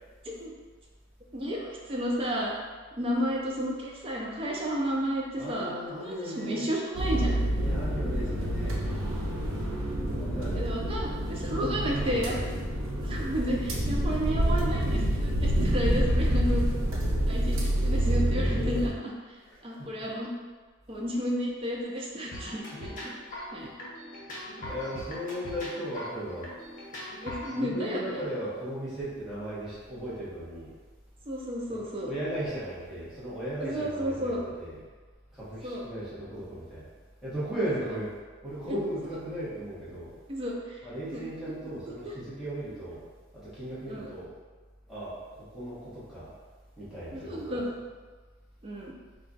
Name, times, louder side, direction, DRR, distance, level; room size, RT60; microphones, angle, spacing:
voice 1, 1.3-2.5 3.0-7.4 10.5-12.4 13.0-16.6 17.2-17.6 17.8-19.4 19.6-20.3 20.9-23.0 23.5-23.7 24.6-24.7 27.2-28.2 31.3-32.1 33.6-34.4 35.6-35.8 37.8-37.9 40.3-40.8 41.1-42.1 43.9-44.1 47.1-47.7 48.6-48.9, equal, 30° right, -3 dB, 0.5 m, -32 dB
voice 2, 5.4-6.6 7.6-8.8 10.2-10.6 11.7-12.4 19.4-19.8 22.8-23.2 24.7-26.5 27.5-30.7 31.7-31.8 32.0-34.8 35.3-36.9 37.2-38.2 38.4-40.1 40.8-43.0 43.3-44.3 44.9-46.3 46.8-47.6, right 1 dB, ahead, -12 dB, 1.0 m, -36 dB
sound 1, 7.0-18.9, right 1 dB, 85° right, 0.6 m, -27 dB
sound 2, 22.3-27.6, left 1 dB, 40° left, 0.7 m, -40 dB
2.4 x 2.3 x 3.8 m, 1.4 s
head